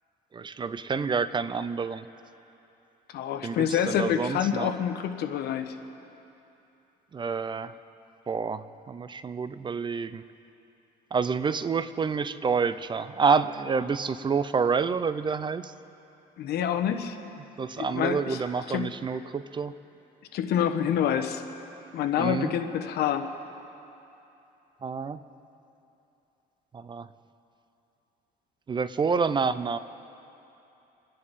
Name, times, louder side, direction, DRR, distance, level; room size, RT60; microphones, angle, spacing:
voice 1, 0.3-2.1 3.4-4.7 7.1-7.7 8.3-10.2 11.1-15.7 17.6-19.7 22.2-22.5 24.8-25.2 26.7-27.1 28.7-29.8, right 5 dB, 30° right, 14 dB, 0.5 m, -28 dB
voice 2, 3.1-5.8 16.4-17.2 17.8-18.4 18.7-18.9 20.3-21.4 21.9-23.3, left 9 dB, 70° left, 7 dB, 1.1 m, -27 dB
29.0 x 10.5 x 4.2 m, 2.9 s
cardioid pair, 110°, 17 cm